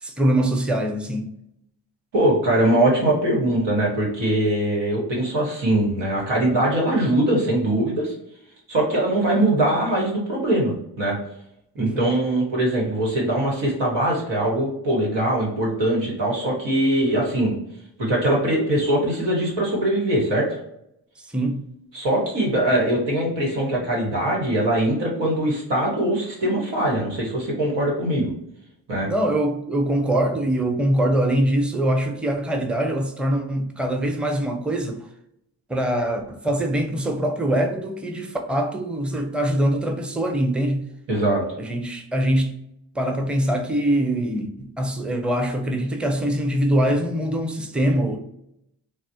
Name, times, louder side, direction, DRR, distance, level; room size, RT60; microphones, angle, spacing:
voice 1, 0.0-1.3 11.8-12.1 21.2-21.6 29.1-35.1 35.7-40.9 41.6-42.6 42.9-48.2, right 1 dB, 5° right, 0.6 m, -23 dB
voice 2, 2.1-8.1 8.7-11.2 11.7-17.5 18.0-20.6 21.9-28.3 28.9-29.1 41.1-41.4, right 1 dB, 90° right, 1.3 m, -22 dB
4.0 x 2.0 x 2.7 m
supercardioid pair, 50°, 41 cm